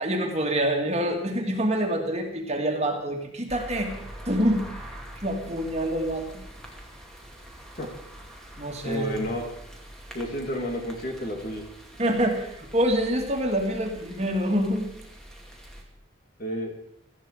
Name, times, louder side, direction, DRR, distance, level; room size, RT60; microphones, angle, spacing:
voice 1, 0.0-3.9 4.3-4.6 5.2-6.4 8.6-9.1 12.0-14.9, equal, 30° right, 2 dB, 2.2 m, -26 dB
sound 1, 3.5-15.8, right 1 dB, 5° left, 2.4 m, -44 dB
voice 2, 8.8-9.4 10.1-11.6 16.4-16.7, equal, 40° left, 1 dB, 2.9 m, -30 dB
17.5 x 14.0 x 5.0 m, 0.73 s
head